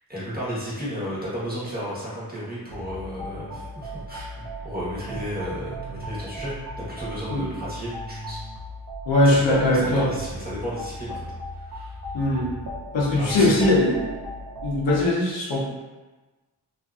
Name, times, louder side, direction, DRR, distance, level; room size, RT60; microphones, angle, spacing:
voice 1, 0.1-8.4 9.2-11.2 11.6-11.9 13.2-13.5, equal, 20° right, -9 dB, 1.0 m, -33 dB
sound 1, 2.7-15.1, equal, 55° right, 0.6 m, -37 dB
voice 2, 9.1-10.1 12.1-12.5 12.9-14.0 14.6-15.7, left 1 dB, 85° left, -4 dB, 0.7 m, -20 dB
2.5 x 2.4 x 2.3 m, 1.2 s
wide cardioid pair, 80°, 43 cm